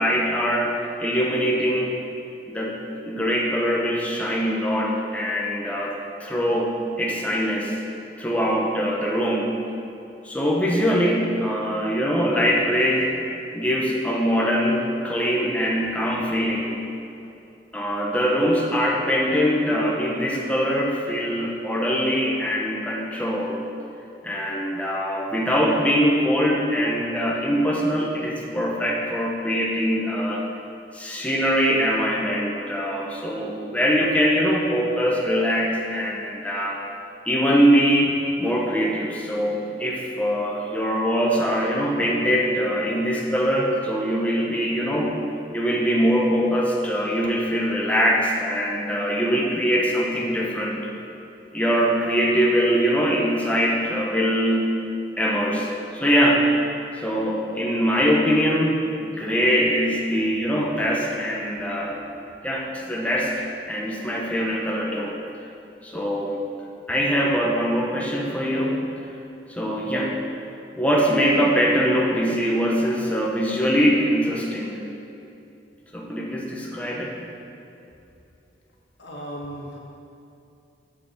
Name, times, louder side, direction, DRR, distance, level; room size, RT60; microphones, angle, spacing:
voice 1, 0.0-1.9 2.5-2.7 3.1-6.7 7.0-7.8 8.2-9.5 10.2-13.1 13.5-16.7 17.7-23.6 24.2-30.4 30.9-36.8 37.2-45.1 45.5-50.8 51.5-54.6 55.2-56.4 57.0-62.0 62.4-63.3 63.7-65.1 65.8-66.4 66.9-68.8 69.5-70.1 70.8-74.8 75.9-77.1, equal, 10° left, -3 dB, 1.1 m, -22 dB
voice 2, 79.0-79.8, equal, 80° left, -2 dB, 1.8 m, -36 dB
8.0 x 7.3 x 6.9 m, 2.7 s
head